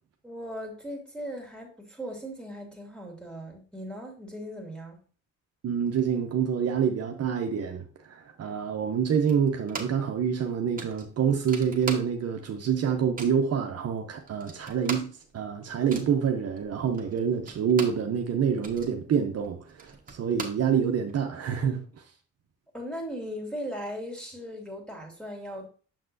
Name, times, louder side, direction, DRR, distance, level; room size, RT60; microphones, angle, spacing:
voice 1, 0.2-5.0 22.7-25.7, equal, 5° left, 2.3 m, -38 dB
voice 2, 5.6-21.8, right 7 dB, 55° right, 0.8 m, -27 dB
sound 1, 9.3-10.1 10.4-10.5 10.8-12.5 12.7-13.5 14.0-14.1 14.3-18.1 18.4-21.2, right 4 dB, 30° right, 1.4 m, -40 dB
6.9 x 5.9 x 2.7 m
cardioid pair, 90°, 30 cm